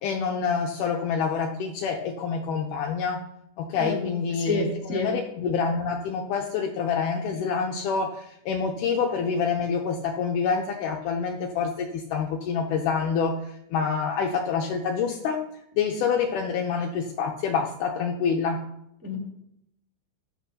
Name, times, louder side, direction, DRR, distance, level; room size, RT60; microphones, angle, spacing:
voice 1, 0.0-3.2 3.6-15.4 15.8-18.6, left 6 dB, 75° left, 3 dB, 2.0 m, -27 dB
voice 2, 4.4-5.1 19.0-19.2, left 2 dB, 5° right, -5 dB, 1.7 m, -29 dB
14.5 x 10.5 x 2.8 m, 0.79 s
omnidirectional pair, 4.1 m